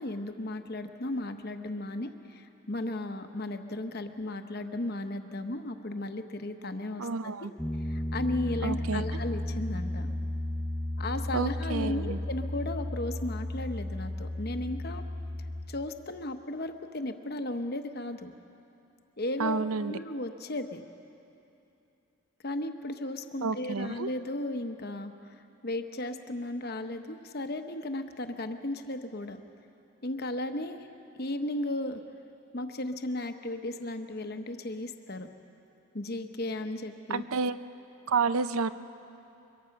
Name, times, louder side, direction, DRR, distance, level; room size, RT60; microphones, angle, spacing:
voice 1, 0.0-7.1 7.4-7.5 7.9-10.1 11.0-15.0 15.7-18.3 19.2-20.8 22.4-29.4 30.0-30.9 31.1-32.0 32.5-35.3 35.9-37.2, left 1 dB, 45° left, 7 dB, 1.0 m, -35 dB
voice 2, 7.0-7.5 8.6-9.2 11.3-12.2 19.4-20.0 23.4-24.1 37.1-37.6 38.1-38.7, right 4 dB, 80° right, 13 dB, 0.6 m, -30 dB
Piano, 7.6-15.7, left 1 dB, 5° left, 0.9 m, -34 dB
23.5 x 22.5 x 5.9 m, 2.8 s
head